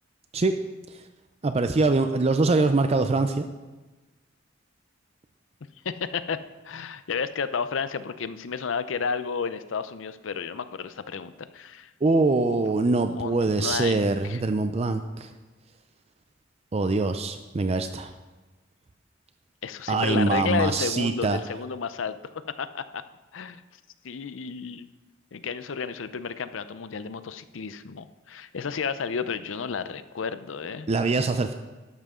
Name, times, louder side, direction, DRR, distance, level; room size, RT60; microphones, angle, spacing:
voice 1, 1.4-3.4 12.0-15.3 16.7-18.1 19.9-21.4 30.9-31.5, right 3 dB, 35° right, 8 dB, 0.5 m, -23 dB
voice 2, 5.8-6.4 6.6-11.9 12.5-12.6 13.0-14.4 19.6-22.2 22.6-23.0 23.3-23.6 24.0-24.9 25.3-30.9, left 5 dB, 85° left, 13 dB, 0.6 m, -32 dB
12.0 x 11.0 x 3.7 m, 1.2 s
head